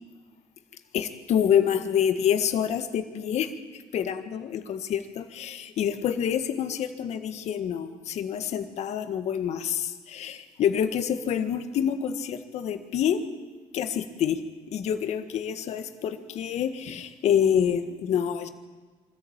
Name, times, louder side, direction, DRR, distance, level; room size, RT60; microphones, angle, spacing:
voice 1, 0.9-3.5 3.9-13.3 13.7-14.4 14.7-18.5, left 9 dB, 70° left, 8 dB, 1.7 m, -27 dB
24.5 x 14.0 x 8.9 m, 1.4 s
supercardioid pair, 65°, 12 cm